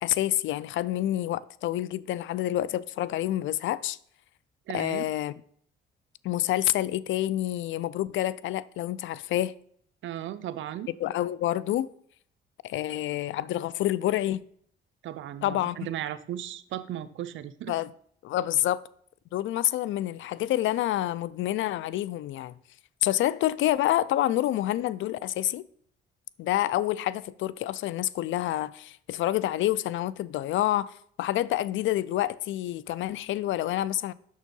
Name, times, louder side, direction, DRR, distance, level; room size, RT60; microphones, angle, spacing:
voice 1, 0.0-4.0 4.7-5.3 6.2-9.5 11.0-11.9 12.6-14.4 15.4-15.8 17.7-17.9 18.2-18.8 19.3-22.5 23.0-25.6 26.4-34.1, left 14 dB, 75° left, 0.4 m, -28 dB
voice 2, 4.7-5.1 10.0-10.9 15.0-17.8, right 11 dB, 75° right, 0.6 m, -36 dB
6.5 x 6.3 x 5.3 m
cardioid pair, 90°, 20 cm